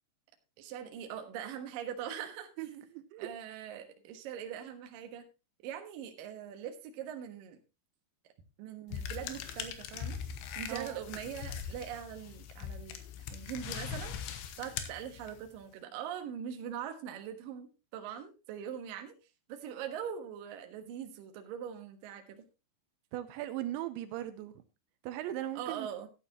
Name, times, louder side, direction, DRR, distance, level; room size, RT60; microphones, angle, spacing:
voice 1, 0.6-2.5 3.2-5.3 5.6-7.6 8.6-10.2 10.5-13.0 13.3-14.1 14.6-19.1 19.5-22.5 25.6-26.1, right 9 dB, 65° right, 2.5 m, -42 dB
voice 2, 2.6-3.3 10.7-11.0 23.1-24.6 25.0-25.9, right 13 dB, 80° right, 3.0 m, -38 dB
sound 1, 8.9-15.6, left 8 dB, 80° left, 3.3 m, -41 dB
13.5 x 10.0 x 2.9 m
omnidirectional pair, 5.3 m